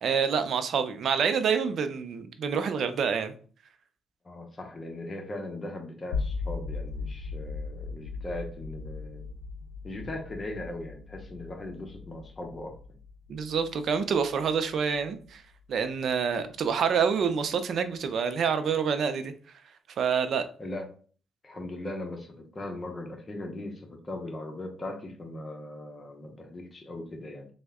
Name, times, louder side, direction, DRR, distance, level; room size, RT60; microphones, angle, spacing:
voice 1, 0.0-3.3 13.3-15.4 15.7-19.3 20.0-20.4, right 6 dB, 60° right, 9 dB, 0.4 m, -27 dB
voice 2, 4.2-9.3 9.8-12.8 20.6-20.9 21.4-27.5, left 1 dB, 30° left, 3 dB, 0.8 m, -39 dB
sound 1, 6.1-16.1, left 4 dB, 85° left, 0.5 m, -38 dB
3.4 x 2.1 x 3.5 m, 0.42 s
cardioid pair, 90°, 0 cm